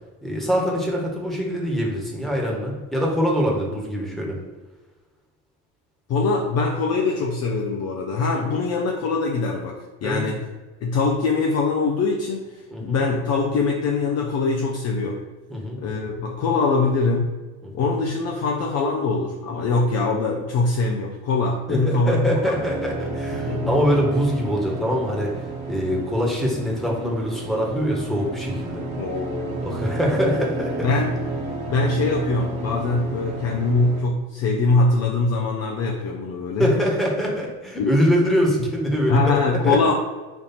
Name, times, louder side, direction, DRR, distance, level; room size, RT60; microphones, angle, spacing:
voice 1, 0.2-4.4 8.3-8.6 10.0-10.2 12.7-13.0 15.5-15.8 17.6-17.9 21.7-21.8 22.0-25.3 25.7-28.8 29.6-30.9 36.6-39.2 39.6-39.9, equal, ahead, -2 dB, 1.3 m, -23 dB
voice 2, 6.1-10.5 10.8-15.2 15.8-17.4 17.7-22.5 23.3-23.8 29.0-29.8 30.8-31.2 31.7-36.7 37.8-37.9 38.6-38.7 39.1-39.9, left 3 dB, 35° left, 0 dB, 0.6 m, -23 dB
sound 1, 22.4-34.0, right 2 dB, 35° right, 1.3 m, -31 dB
4.4 x 2.8 x 4.0 m, 1.3 s
figure-of-eight pair, 65°, 47 cm